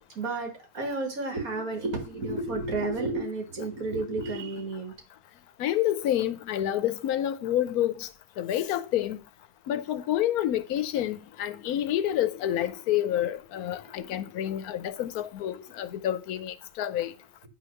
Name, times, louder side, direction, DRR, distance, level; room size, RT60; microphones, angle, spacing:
voice 1, 0.2-4.9 13.6-13.7, right 2 dB, 70° right, 2.1 m, -31 dB
voice 2, 5.6-8.1 8.4-9.2 9.7-17.1, left 12 dB, 80° left, 1.1 m, -28 dB
8.9 x 3.1 x 6.2 m
omnidirectional pair, 1.6 m